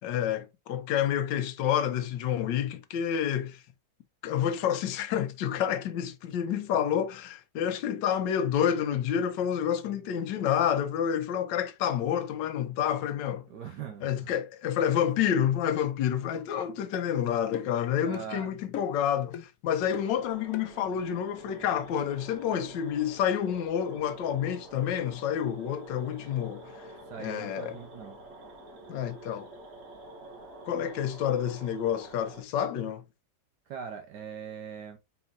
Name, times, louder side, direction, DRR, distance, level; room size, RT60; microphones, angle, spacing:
voice 1, 0.0-3.6 4.2-13.5 14.0-26.8 27.2-27.7 28.9-29.5 30.6-33.0, left 9 dB, 85° left, 1.3 m, -29 dB
voice 2, 13.5-14.3 18.0-18.5 27.1-28.2 33.7-35.0, right 7 dB, 70° right, 1.3 m, -41 dB
sound 1, 16.3-16.5 16.9-17.1 17.5-17.8 18.1-18.3 18.7-19.0 19.3-19.5 19.9-20.2 20.5-20.7, left 9 dB, 65° left, 0.9 m, -40 dB
sound 2, 19.8-32.4, right 1 dB, 55° right, 1.8 m, -48 dB
4.3 x 3.9 x 2.5 m
omnidirectional pair, 1.9 m